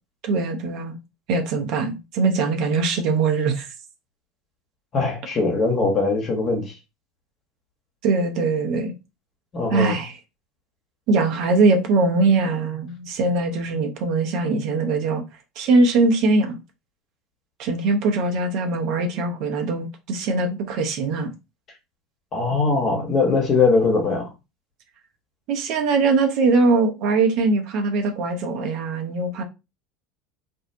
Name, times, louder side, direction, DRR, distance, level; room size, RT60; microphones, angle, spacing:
voice 1, 0.2-1.0 1.3-3.7 8.0-8.9 9.7-10.1 11.1-15.2 15.6-16.6 17.6-21.3 25.5-29.4, right 3 dB, 60° right, 0.7 m, -21 dB
voice 2, 4.9-6.7 9.5-10.0 22.3-24.3, left 3 dB, 40° left, 1.1 m, -21 dB
2.6 x 2.1 x 2.7 m
hypercardioid pair, 75°, 0 cm